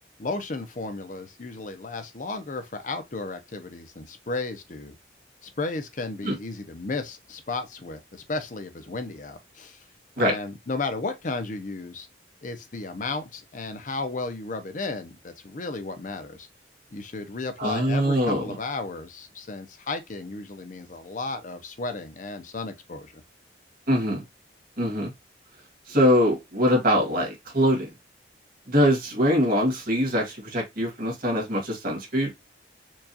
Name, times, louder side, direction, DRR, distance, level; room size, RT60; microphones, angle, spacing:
voice 1, 0.2-5.0 5.4-9.8 10.2-12.1 12.4-16.5 16.9-23.2, left 3 dB, 45° left, 0.6 m, -34 dB
voice 2, 17.6-18.5 23.9-24.2 24.8-25.1 25.9-27.9 28.7-32.4, equal, 50° right, 1.7 m, -23 dB
4.6 x 2.4 x 2.7 m
head